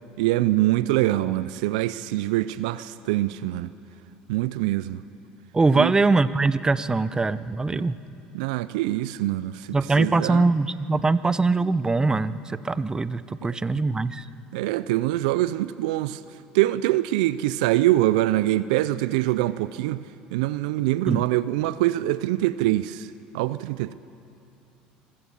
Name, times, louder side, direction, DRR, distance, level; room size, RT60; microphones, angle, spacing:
voice 1, 0.2-3.7 4.3-5.0 5.8-5.9 7.7-7.8 8.3-9.6 10.0-10.5 14.5-16.2 16.5-20.0 20.3-23.1 23.3-23.9, right 16 dB, 80° right, 0.5 m, -24 dB
voice 2, 5.5-7.9 9.7-14.2 21.1-21.2, right 3 dB, 20° right, 0.8 m, -22 dB
26.5 x 15.5 x 7.3 m
hypercardioid pair, 75°, 4 cm